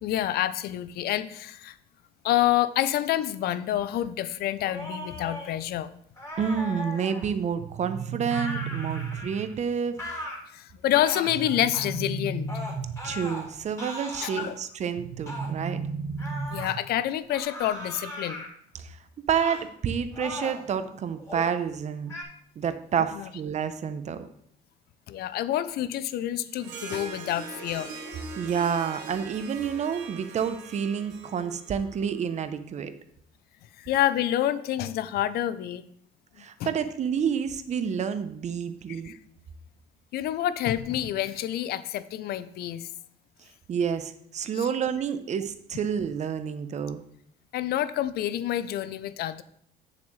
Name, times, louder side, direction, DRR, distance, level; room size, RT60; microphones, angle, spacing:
voice 1, 0.0-1.8 2.2-5.9 9.9-10.2 10.5-12.5 14.2-14.6 16.5-18.4 23.1-23.3 25.1-27.9 33.8-35.8 36.6-36.7 38.9-39.2 40.1-42.9 44.5-44.7 47.5-49.4, left 12 dB, 70° left, 15 dB, 0.5 m, -28 dB
sound 1, 4.6-5.5 6.2-7.3 8.3-9.5 10.0-10.4 10.9-11.3 11.7-11.9 12.5-13.5 13.8-14.5 15.3-15.5 16.2-16.8 17.3-18.5 19.4-19.7 20.1-20.7 21.2-21.5 22.1-22.2, left 1 dB, 15° left, 3.0 m, -38 dB
voice 2, 6.4-10.0 13.0-15.8 18.8-19.0 19.3-22.1 22.6-24.2 28.4-32.9 36.4-39.1 43.7-47.0, right 7 dB, 45° right, 10 dB, 0.8 m, -29 dB
sound 2, 7.6-9.6 11.3-13.3 15.0-17.0, right 4 dB, 65° right, 1.3 m, -34 dB
Harp, 26.6-32.3, right 4 dB, 85° right, 1.5 m, -41 dB
8.8 x 7.2 x 3.2 m, 0.69 s
cardioid pair, 110°, 17 cm